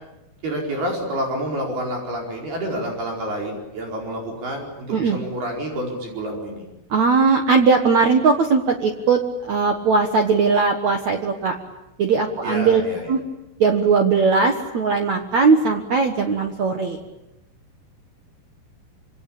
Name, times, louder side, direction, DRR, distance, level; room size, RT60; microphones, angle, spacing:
voice 1, 0.4-6.6 12.4-13.1, right 1 dB, 55° right, 0 dB, 6.5 m, -28 dB
voice 2, 6.9-11.5 12.0-12.8 13.1-13.2 13.6-17.0, right 4 dB, 70° right, 4 dB, 1.7 m, -19 dB
26.5 x 25.5 x 8.7 m, 0.97 s
omnidirectional pair, 5.7 m